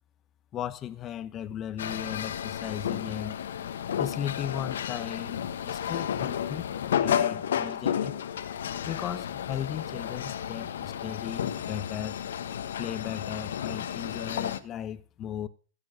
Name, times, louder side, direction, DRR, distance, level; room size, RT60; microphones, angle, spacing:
voice 1, 0.5-3.4 4.0-6.7 7.0-8.2 8.9-12.2 12.8-15.5, left 10 dB, 30° left, 1.0 m, -36 dB
sound 1, 1.8-14.6, left 9 dB, 85° left, 1.2 m, -32 dB
15.5 x 7.1 x 6.4 m
hypercardioid pair, 125°, 0 cm